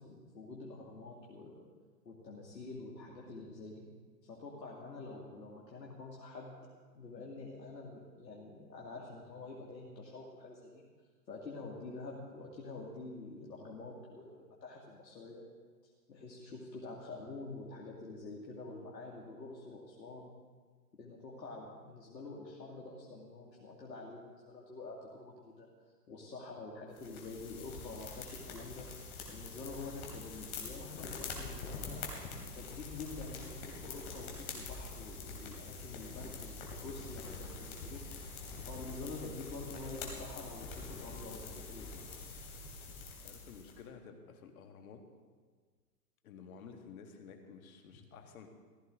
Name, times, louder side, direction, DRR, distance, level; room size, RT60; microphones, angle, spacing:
voice 1, 0.0-1.6 2.0-3.9 4.2-6.6 6.9-10.8 11.3-15.4 16.1-20.3 21.0-25.7 26.1-32.1 32.5-38.0 38.6-42.0, left 3 dB, 80° left, -3 dB, 2.3 m, -47 dB
sound 1, 26.9-43.8, left 4 dB, 35° left, 3.0 m, -45 dB
voice 2, 43.2-45.0 46.2-48.5, left 6 dB, 55° left, 5 dB, 1.9 m, -52 dB
15.5 x 13.0 x 3.8 m, 1.5 s
hypercardioid pair, 130°, 49 cm